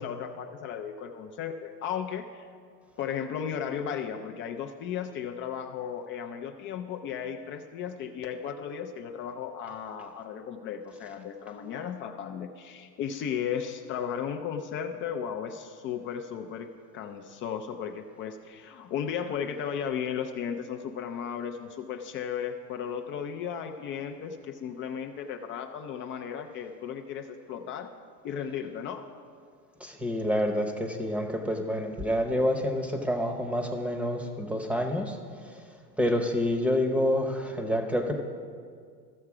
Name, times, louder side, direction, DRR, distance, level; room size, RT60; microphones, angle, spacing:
voice 1, 0.0-2.5 3.0-16.7 16.9-27.9 28.2-29.0, left 8 dB, 30° left, 5 dB, 0.3 m, -35 dB
voice 2, 29.8-35.2 36.0-38.2, left 1 dB, 5° right, 5 dB, 0.8 m, -28 dB
14.0 x 6.5 x 4.8 m, 2.1 s
supercardioid pair, 120°, 47 cm